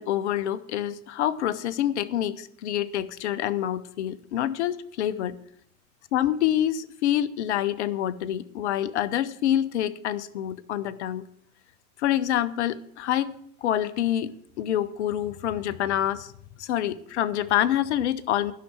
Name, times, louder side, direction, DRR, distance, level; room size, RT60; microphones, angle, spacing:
voice 1, 0.0-5.4 6.1-11.2 12.0-16.3 16.6-18.5, left 11 dB, 50° left, 13 dB, 0.7 m, -27 dB
12.0 x 5.8 x 7.3 m, 0.70 s
figure-of-eight pair, 105°, 45 cm